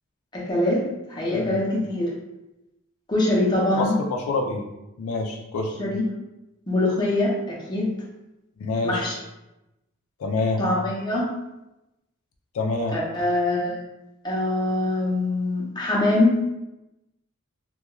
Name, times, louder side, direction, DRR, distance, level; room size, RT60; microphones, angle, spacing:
voice 1, 0.3-0.8 1.1-2.1 3.1-4.0 5.8-6.0 6.7-7.9 8.8-9.1 10.6-11.3 12.9-13.8 14.2-16.4, left 2 dB, 20° left, -5 dB, 0.6 m, -23 dB
voice 2, 3.7-4.7 5.0-5.7 8.6-9.1 10.2-10.6 12.5-13.0, left 3 dB, 80° left, 2 dB, 0.4 m, -26 dB
2.3 x 2.2 x 3.0 m, 0.94 s
head